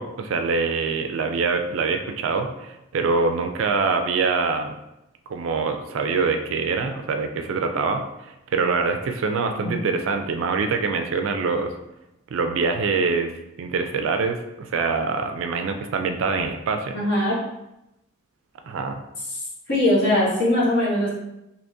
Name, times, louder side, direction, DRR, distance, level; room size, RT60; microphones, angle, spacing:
voice 1, 0.0-4.7 5.3-11.7 12.3-13.3 13.6-17.0 18.7-19.0, right 4 dB, 60° right, 6 dB, 0.3 m, -24 dB
voice 2, 16.9-17.4 19.3-19.4 19.7-21.1, left 1 dB, 50° left, -6 dB, 1.1 m, -21 dB
3.5 x 2.8 x 2.6 m, 0.88 s
head